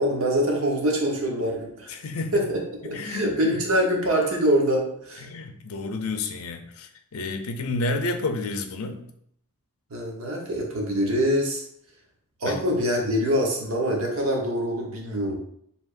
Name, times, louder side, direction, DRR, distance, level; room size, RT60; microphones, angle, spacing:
voice 1, 0.0-2.0 2.3-5.3 9.9-11.6 12.4-15.4, equal, 70° right, 0 dB, 1.0 m, -24 dB
voice 2, 1.9-2.4 2.8-3.6 5.2-9.0 12.4-12.7, left 2 dB, 75° left, 6 dB, 0.5 m, -30 dB
4.8 x 3.4 x 2.5 m, 0.70 s
head